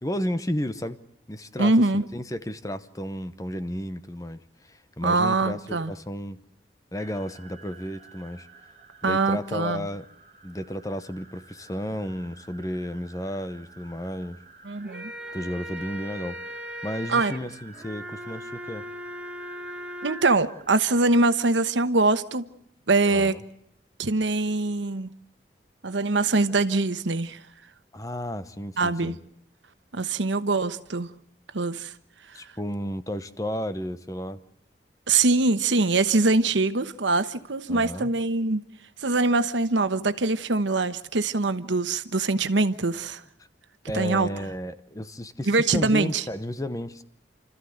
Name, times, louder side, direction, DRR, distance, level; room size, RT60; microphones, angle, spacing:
voice 1, 0.0-1.0 1.3-6.4 6.9-8.5 9.0-10.1 10.4-14.4 15.3-16.4 16.8-18.8 23.1-23.4 27.9-29.2 32.3-34.4 37.7-38.1 43.9-47.0, equal, 20° left, 0.9 m, -33 dB
voice 2, 1.6-2.1 5.0-5.9 9.0-9.9 14.6-15.1 17.1-17.3 20.0-22.5 22.9-23.4 24.0-25.1 25.8-27.4 28.8-29.2 29.9-31.1 31.5-31.9 35.1-38.6 39.0-43.2 43.9-44.3 45.5-46.2, right 3 dB, 85° right, 1.1 m, -23 dB
sound 1, 7.0-21.0, right 3 dB, 40° right, 3.0 m, -51 dB
sound 2, 14.7-20.3, equal, 5° right, 2.1 m, -38 dB
29.5 x 14.0 x 7.9 m
head